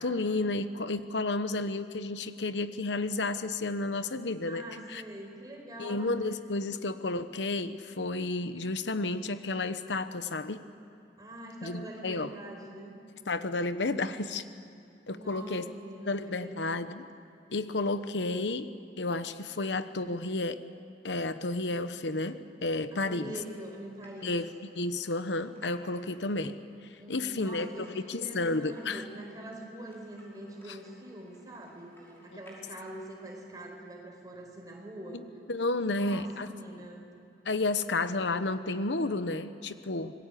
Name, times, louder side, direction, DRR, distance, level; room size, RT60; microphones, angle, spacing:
voice 1, 0.0-5.0 5.8-10.6 11.6-12.3 13.3-14.4 15.1-15.6 16.1-17.0 17.5-18.7 19.0-20.6 21.0-23.3 24.2-24.5 24.7-26.6 27.1-27.7 27.9-29.0 35.5-36.5 37.4-40.1, left 2 dB, 85° left, 11 dB, 1.0 m, -31 dB
voice 2, 4.5-6.1 11.2-12.9 15.1-16.7 22.9-24.3 27.0-35.2 35.8-37.1, right 1 dB, 20° right, 0 dB, 4.7 m, -44 dB
sound 1, 23.1-33.6, equal, 15° left, 5.5 m, -59 dB
26.0 x 20.5 x 8.4 m, 2.6 s
head